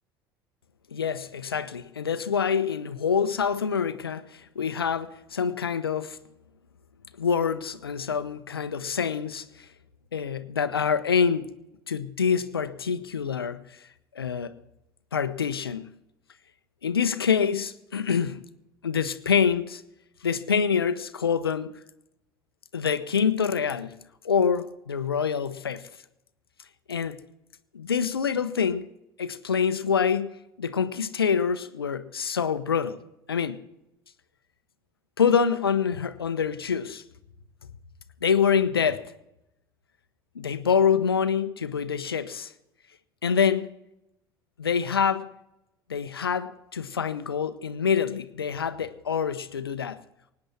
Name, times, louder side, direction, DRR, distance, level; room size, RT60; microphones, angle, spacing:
voice 1, 0.9-6.2 7.2-9.5 10.1-11.5 11.9-13.6 14.2-14.5 15.1-15.8 16.8-18.4 18.8-19.8 20.2-21.7 22.7-24.0 24.2-25.8 26.9-27.2 27.7-28.9 29.2-33.0 33.3-33.6 35.2-37.0 38.2-39.0 40.4-42.5 43.2-43.7 44.6-45.3 45.9-50.0, left 6 dB, 85° left, 0.8 m, -26 dB
24.0 x 9.8 x 4.5 m
figure-of-eight pair, 65°, 12 cm